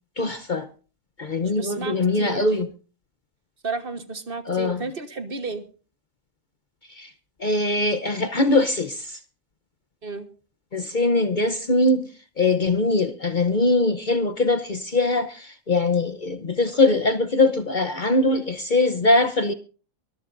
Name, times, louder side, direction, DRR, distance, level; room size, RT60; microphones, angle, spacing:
voice 1, 0.2-0.7 1.2-2.7 4.5-4.8 7.0-7.1 7.4-9.2 10.7-12.1 12.4-19.5, left 2 dB, 40° left, 0.9 m, -22 dB
voice 2, 1.4-2.5 3.6-5.6 10.0-10.3, right 4 dB, 45° right, 1.5 m, -32 dB
23.5 x 14.0 x 2.6 m
omnidirectional pair, 1.3 m